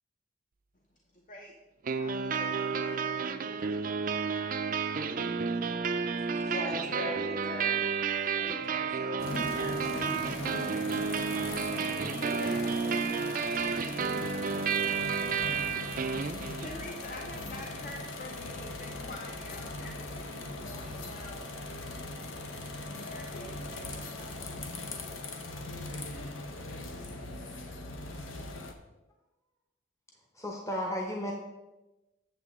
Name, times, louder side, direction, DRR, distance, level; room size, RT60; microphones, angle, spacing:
sound 1, 1.8-16.8, right 5 dB, 45° right, 0.4 m, -31 dB
voice 1, 1.9-3.5 11.7-13.0 15.6-21.6 22.8-24.0, left 1 dB, 40° left, 2 dB, 0.7 m, -47 dB
voice 2, 6.4-7.8 8.3-10.6, left 1 dB, 60° left, -3 dB, 2.4 m, -40 dB
sound 2, 9.2-28.7, left 2 dB, 80° left, 0.9 m, -40 dB
voice 3, 30.4-31.3, equal, 15° left, 1 dB, 0.8 m, -33 dB
8.1 x 7.3 x 3.6 m, 1.0 s
head